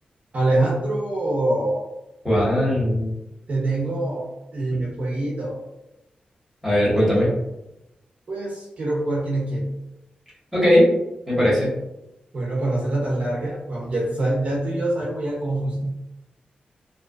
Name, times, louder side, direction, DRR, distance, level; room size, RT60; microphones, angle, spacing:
voice 1, 0.3-1.9 3.5-4.3 4.5-5.6 8.3-9.7 12.3-15.9, right 2 dB, 50° right, -4 dB, 0.6 m, -24 dB
voice 2, 2.2-3.1 6.6-7.3 10.5-10.9 11.3-11.7, equal, 5° right, -8 dB, 1.3 m, -18 dB
2.4 x 2.2 x 2.3 m, 0.93 s
wide cardioid pair, 95°, 3 cm